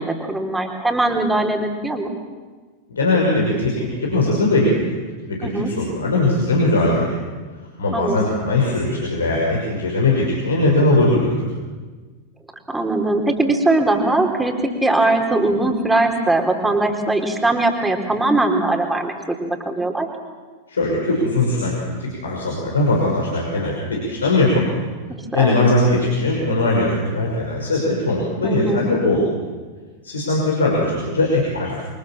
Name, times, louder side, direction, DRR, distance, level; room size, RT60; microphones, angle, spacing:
voice 1, 0.0-2.1 5.4-5.7 7.9-8.3 12.7-20.1 25.3-25.6 28.4-28.9, right 2 dB, 5° right, 3 dB, 4.0 m, -20 dB
voice 2, 2.9-4.9 5.4-7.1 7.8-11.3 20.7-24.7 25.3-29.2 30.0-31.8, left 2 dB, 70° left, -2 dB, 6.0 m, -20 dB
29.5 x 24.0 x 7.4 m, 1.4 s
figure-of-eight pair, 90°, 0 cm